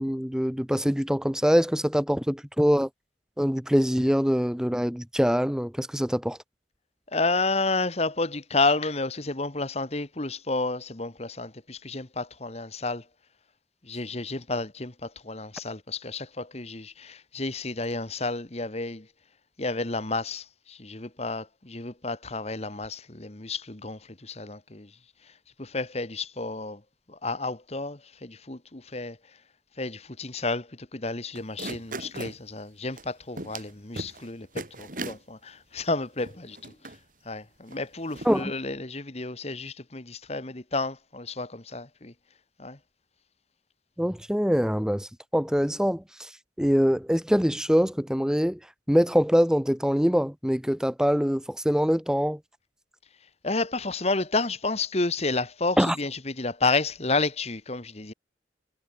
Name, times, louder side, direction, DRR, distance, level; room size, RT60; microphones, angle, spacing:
voice 1, 0.0-2.9 3.4-6.4 38.2-38.5 44.0-46.3 46.6-48.6 48.9-52.4 55.8-56.0, equal, 5° right, 1.0 m, -24 dB
voice 2, 7.1-13.0 13.8-19.1 19.6-24.9 25.6-26.8 27.1-29.2 29.8-36.7 37.2-42.1 42.6-42.8 53.4-58.1, left 3 dB, 35° left, 1.7 m, -31 dB
sound 1, 31.4-32.4 33.0-33.1 33.4-33.7 34.0-34.3 34.6-35.2 35.8-35.9 36.2-37.0 37.7-37.8 38.1-38.4, right 2 dB, 50° right, 5.1 m, -37 dB
head